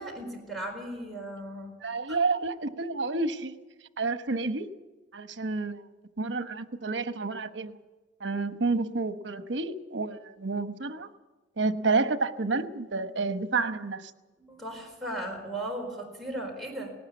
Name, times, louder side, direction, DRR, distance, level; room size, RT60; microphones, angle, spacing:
voice 1, 0.0-1.8 2.1-2.2 14.4-16.9, right 1 dB, ahead, 4.4 m, -37 dB
voice 2, 1.8-3.5 4.0-4.7 5.1-5.9 6.2-7.8 8.2-11.1 11.6-14.1, right 3 dB, 75° right, 1.0 m, -29 dB
18.5 x 18.5 x 8.3 m
head